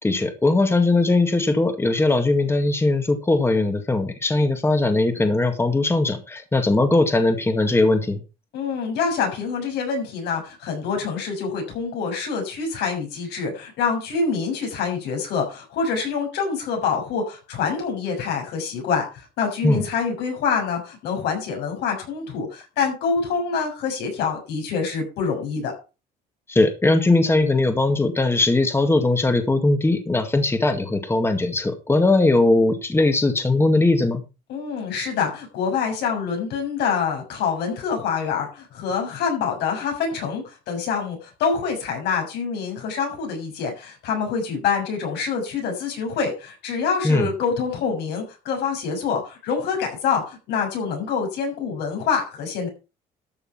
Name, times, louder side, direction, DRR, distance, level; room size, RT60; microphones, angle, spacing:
voice 1, 0.0-8.2 19.6-19.8 26.5-34.2 47.0-47.3, left 2 dB, 15° left, 7 dB, 2.0 m, -20 dB
voice 2, 8.5-25.7 34.5-52.7, left 5 dB, 80° left, 3 dB, 6.7 m, -26 dB
13.0 x 6.6 x 5.8 m, 0.31 s
cardioid pair, 110°, 17 cm